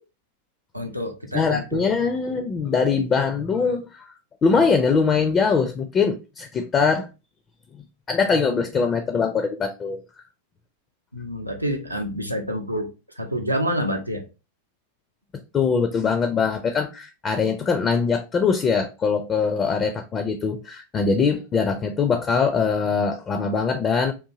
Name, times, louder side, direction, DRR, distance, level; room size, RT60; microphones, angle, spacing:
voice 1, 0.7-1.9 11.1-14.3, equal, 85° right, 0.5 m, -28 dB
voice 2, 1.3-4.0 4.4-7.1 7.7-10.0 15.5-24.1, left 5 dB, 25° left, 0.4 m, -22 dB
3.6 x 2.6 x 2.6 m
figure-of-eight pair, 90°, 0 cm